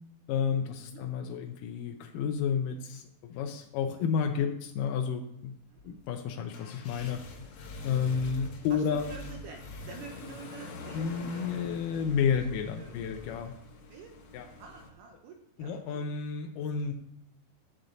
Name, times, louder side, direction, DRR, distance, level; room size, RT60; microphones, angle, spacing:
voice 1, 0.3-5.5 5.8-7.2 7.8-9.0 10.9-13.5 14.3-14.5 15.6-16.9, left 7 dB, 80° left, 4 dB, 1.9 m, -31 dB
sound 1, 5.7-14.9, left 3 dB, 65° left, 1.8 m, -45 dB
voice 2, 8.7-11.7 12.5-13.0 13.9-14.1 14.5-16.0, right 5 dB, 75° right, 3 dB, 2.0 m, -48 dB
9.9 x 7.9 x 3.9 m, 0.74 s
omnidirectional pair, 4.6 m